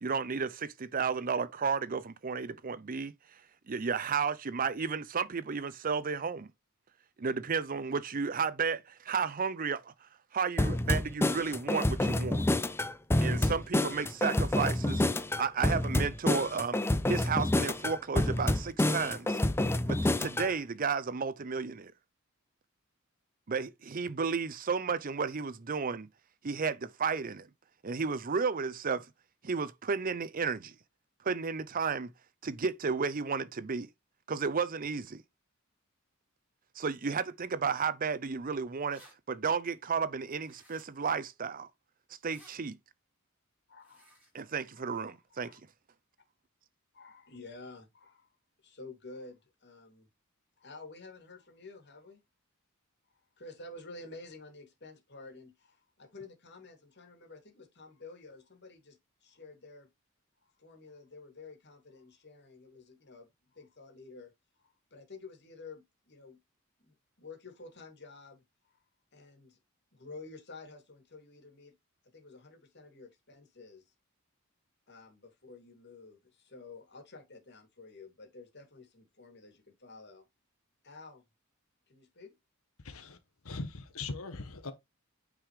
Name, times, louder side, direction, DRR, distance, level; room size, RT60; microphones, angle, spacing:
voice 1, 0.0-3.1 3.7-6.5 7.2-9.9 10.3-12.4 13.2-15.0 15.4-16.8 17.1-19.4 19.9-21.9 23.5-26.1 26.4-27.5 27.8-29.1 29.4-30.7 31.2-32.1 32.4-33.9 34.3-35.2 36.8-39.0 39.3-41.7 42.2-42.8 44.3-45.6, right 5 dB, 40° right, 0.6 m, -32 dB
sound 1, 10.6-20.5, left 1 dB, 10° left, 0.5 m, -28 dB
sound 2, 38.9-39.1 40.4-41.1 42.2-42.6 43.8-44.3, right 1 dB, 5° right, 5.6 m, -58 dB
voice 2, 43.7-44.5 44.7-45.6 46.9-48.3 48.6-50.1 50.6-52.2 53.4-59.9 60.6-63.3 63.5-64.3 64.9-66.4 66.8-68.4 69.1-69.6 69.9-71.7 72.1-73.8 74.9-80.3 80.8-81.2 81.9-82.4, left 3 dB, 55° left, 2.8 m, -51 dB
voice 3, 82.8-83.2 83.4-84.7, left 3 dB, 75° left, 1.2 m, -40 dB
9.2 x 4.9 x 3.3 m
head